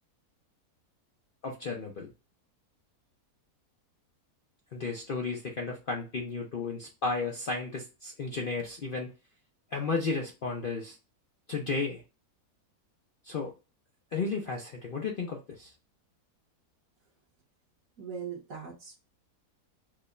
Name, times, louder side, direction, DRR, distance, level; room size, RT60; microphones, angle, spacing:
voice 1, 1.4-2.1 4.7-9.1 9.7-11.0 11.5-12.0 13.2-13.5 14.1-15.7, left 4 dB, 60° left, 0 dB, 0.5 m, -33 dB
voice 2, 18.0-18.9, right 7 dB, 65° right, -3 dB, 1.4 m, -40 dB
4.7 x 2.1 x 2.4 m, 0.29 s
omnidirectional pair, 1.7 m